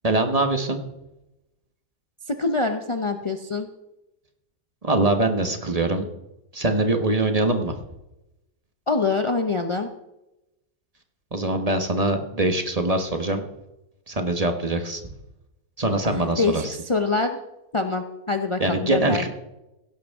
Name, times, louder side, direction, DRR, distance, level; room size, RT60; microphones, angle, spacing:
voice 1, 0.0-0.8 4.8-6.1 6.5-7.8 11.3-13.4 14.1-15.1 15.8-16.8 18.6-19.3, right 2 dB, 25° right, 5 dB, 1.1 m, -23 dB
voice 2, 2.3-3.7 8.9-9.9 16.0-17.4 17.7-19.3, left 3 dB, 55° left, 6 dB, 0.3 m, -25 dB
16.5 x 11.5 x 3.6 m, 0.93 s
omnidirectional pair, 1.7 m